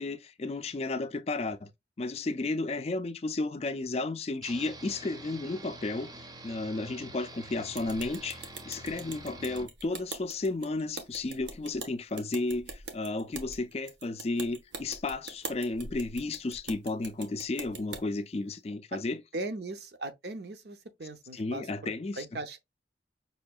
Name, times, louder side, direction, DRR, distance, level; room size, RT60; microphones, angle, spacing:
voice 1, 0.0-1.7 2.0-6.1 6.4-19.2 21.3-22.3, left 2 dB, 35° left, 0.4 m, -33 dB
sound 1, 4.4-9.7, right 2 dB, 20° right, 0.5 m, -47 dB
sound 2, 7.7-18.0, right 4 dB, 80° right, 1.0 m, -43 dB
voice 2, 9.3-9.7 18.9-19.0 19.3-22.6, right 2 dB, 65° right, 0.6 m, -39 dB
5.5 x 2.6 x 2.3 m
head